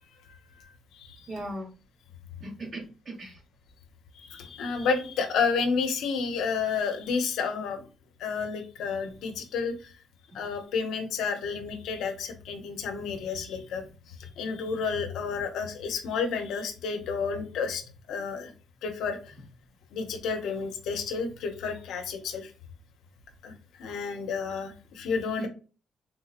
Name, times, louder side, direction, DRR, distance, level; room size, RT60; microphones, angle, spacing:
voice 1, 0.3-1.3 4.1-7.8 8.2-9.9 10.3-17.8 18.1-18.5 18.8-19.3 19.9-22.5 23.4-23.5 23.8-25.5, left 5 dB, 80° left, 6 dB, 0.6 m, -31 dB
voice 2, 1.3-1.7 2.4-3.4 25.4-25.5, right 1 dB, 45° right, 2 dB, 1.0 m, -37 dB
3.6 x 2.8 x 2.4 m, 0.35 s
cardioid pair, 90°, 0 cm